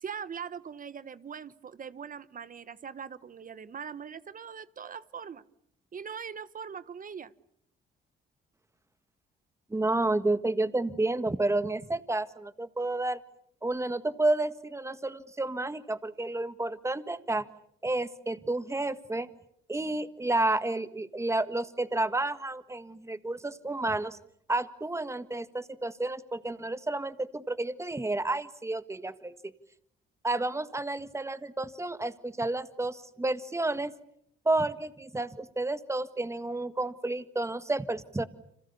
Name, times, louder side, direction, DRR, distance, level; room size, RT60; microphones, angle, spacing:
voice 1, 0.0-5.4 5.9-7.3, right 7 dB, 45° right, 15 dB, 1.2 m, -41 dB
voice 2, 9.7-13.2 13.6-17.5 17.8-19.3 19.7-24.2 24.5-29.3 30.2-33.9 34.4-38.2, right 2 dB, 15° right, 12 dB, 1.6 m, -30 dB
30.0 x 26.0 x 7.0 m, 0.73 s
cardioid pair, 90°, 20 cm